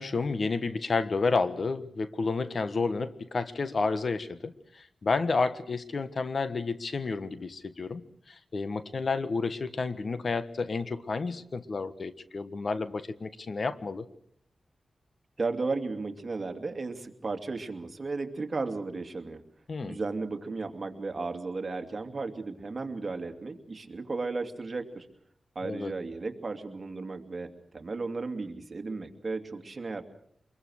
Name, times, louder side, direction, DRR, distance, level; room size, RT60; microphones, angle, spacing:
voice 1, 0.0-14.0 19.7-20.0 25.6-25.9, left 4 dB, 60° left, 12 dB, 1.4 m, -31 dB
voice 2, 15.4-19.4 19.8-25.1 25.5-30.0, right 3 dB, 45° right, 5 dB, 2.7 m, -34 dB
25.0 x 22.0 x 6.4 m, 0.67 s
cardioid pair, 70°, 0 cm